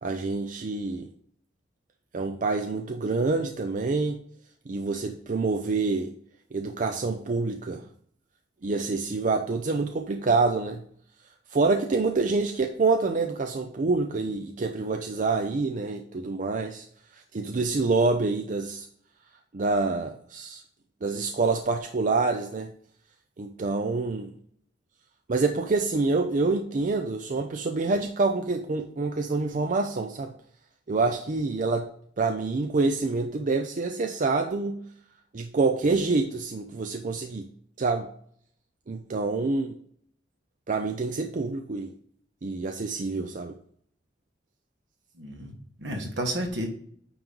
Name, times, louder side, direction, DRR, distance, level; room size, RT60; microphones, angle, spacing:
voice 1, 0.0-1.1 2.1-4.2 4.7-6.1 6.5-7.9 8.6-10.8 11.5-16.9 17.1-18.9 19.5-20.6 21.0-22.7 23.4-24.3 25.3-30.3 30.9-31.9 32.2-34.8 35.3-37.5 37.8-38.1 38.9-39.8 40.7-41.9 42.4-43.5, right 3 dB, 45° right, 5 dB, 0.5 m, -27 dB
voice 2, 45.1-46.7, right 1 dB, 75° right, 3 dB, 1.6 m, -32 dB
9.1 x 3.1 x 5.2 m, 0.63 s
head